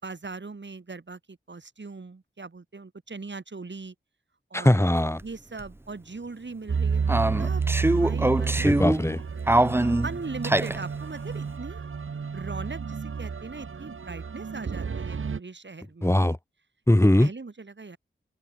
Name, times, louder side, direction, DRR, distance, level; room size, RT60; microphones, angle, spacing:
voice 1, 0.0-3.9 4.5-4.8 5.2-7.6 8.0-8.8 9.7-11.8 12.3-16.3 17.2-18.0, right 3 dB, 60° right, 4.9 m, -40 dB
voice 2, 4.5-5.2 8.6-9.2 16.0-16.4 16.9-17.3, left 1 dB, 10° left, 2.2 m, -20 dB
sound 1, 5.2-5.3 5.6-5.7 7.1-9.1 9.5-10.8, right 1 dB, 10° right, 0.6 m, -23 dB
sound 2, 6.7-15.4, right 5 dB, 80° right, 1.5 m, -30 dB
open air
cardioid pair, 45°, 21 cm